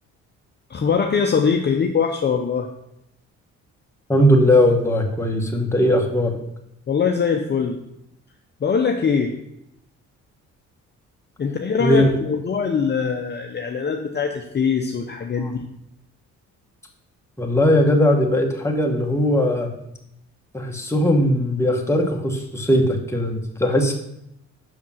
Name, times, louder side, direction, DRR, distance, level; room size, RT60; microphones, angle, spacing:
voice 1, 0.7-2.7 6.9-7.8 8.6-9.3 11.4-15.6, left 6 dB, 35° left, 3 dB, 0.7 m, -22 dB
voice 2, 4.1-6.3 11.8-12.1 15.4-15.5 17.4-19.7 20.5-23.9, left 1 dB, 10° left, 1 dB, 1.2 m, -19 dB
6.1 x 5.1 x 5.5 m, 0.80 s
cardioid pair, 90°, 30 cm